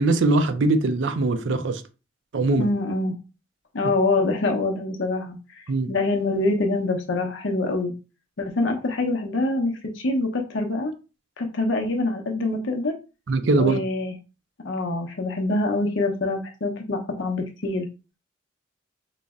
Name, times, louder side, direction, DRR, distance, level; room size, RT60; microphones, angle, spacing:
voice 1, 0.0-1.8 2.3-2.7 5.7-5.9 13.3-13.8, right 2 dB, 70° right, 0.4 m, -21 dB
voice 2, 2.6-3.1 3.7-5.6 5.9-7.9 8.4-10.9 11.4-13.0 13.6-14.1 14.6-17.9, left 2 dB, 75° left, 0.7 m, -25 dB
3.9 x 2.1 x 3.5 m
head